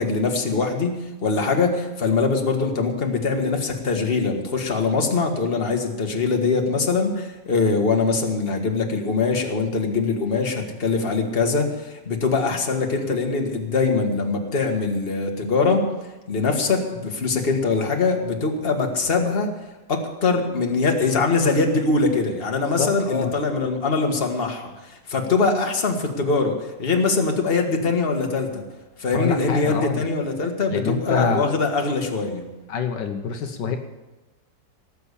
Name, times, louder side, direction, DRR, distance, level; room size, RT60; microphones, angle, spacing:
voice 1, 0.0-15.9 16.3-19.5 19.9-28.7 29.0-32.5, left 4 dB, 35° left, 3 dB, 1.8 m, -22 dB
voice 2, 22.8-23.3 29.1-30.0 30.7-31.4 32.7-33.8, left 6 dB, 75° left, 5 dB, 1.7 m, -25 dB
18.5 x 6.9 x 8.4 m, 1.1 s
omnidirectional pair, 1.9 m